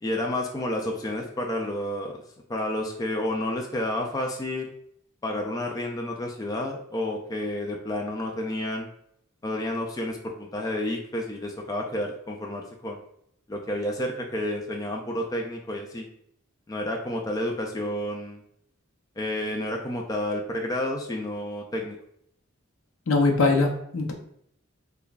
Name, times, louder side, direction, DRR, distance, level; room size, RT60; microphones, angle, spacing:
voice 1, 0.0-2.2 2.5-4.7 5.2-8.9 9.4-13.0 13.5-16.1 16.7-18.4 19.2-22.0, left 1 dB, 15° left, 1 dB, 0.3 m, -30 dB
voice 2, 23.1-24.1, left 3 dB, 70° left, 2 dB, 0.7 m, -22 dB
3.3 x 2.2 x 3.8 m, 0.71 s
head